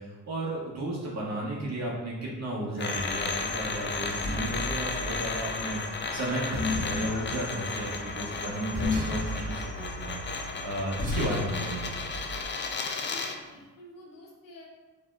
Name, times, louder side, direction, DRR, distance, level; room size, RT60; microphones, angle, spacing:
voice 1, 0.0-10.2 10.6-11.9, right 1 dB, 50° right, -4 dB, 0.8 m, -34 dB
sound 1, 2.8-13.4, left 4 dB, 35° left, 0.4 m, -34 dB
sound 2, 2.9-12.4, left 2 dB, 25° right, 0.9 m, -35 dB
voice 2, 13.0-14.7, left 1 dB, 75° left, -2 dB, 1.0 m, -49 dB
4.2 x 2.8 x 2.3 m, 1.2 s
cardioid pair, 80°, 34 cm